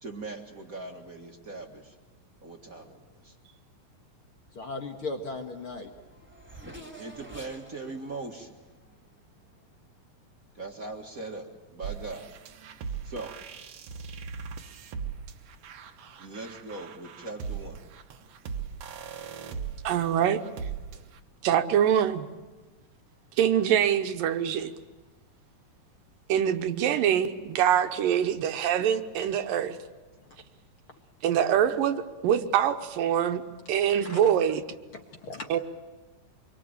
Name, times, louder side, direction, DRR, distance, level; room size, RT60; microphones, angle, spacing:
voice 1, 0.0-1.9 2.4-3.3 7.0-8.5 10.5-12.3 13.0-13.3 16.2-17.8 20.9-21.1, right 3 dB, 35° right, 3 dB, 1.4 m, -40 dB
voice 2, 4.5-5.9 34.0-34.3 34.9-35.5, left 3 dB, 45° left, 3 dB, 1.9 m, -37 dB
Race car auto racing / Accelerating revving vroom, 5.6-9.6, right 1 dB, 5° right, 2.3 m, -49 dB
sound 1, 11.8-21.2, right 6 dB, 60° right, 1.8 m, -39 dB
voice 3, 19.8-20.4 21.4-22.3 23.4-24.7 26.3-29.8 31.2-33.4 33.7-34.6 35.5-35.6, right 9 dB, 80° right, 8 dB, 2.7 m, -24 dB
26.0 x 23.5 x 8.9 m, 1.2 s
omnidirectional pair, 4.1 m